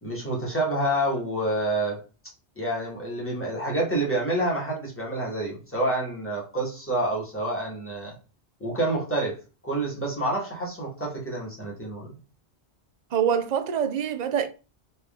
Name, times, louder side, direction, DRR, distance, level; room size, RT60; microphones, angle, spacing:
voice 1, 0.0-2.0 2.6-8.1 8.6-9.4 9.6-12.2, right 1 dB, 10° left, 1.8 m, -28 dB
voice 2, 13.1-14.5, right 8 dB, 50° right, 0.6 m, -25 dB
4.2 x 3.2 x 3.7 m
omnidirectional pair, 1.1 m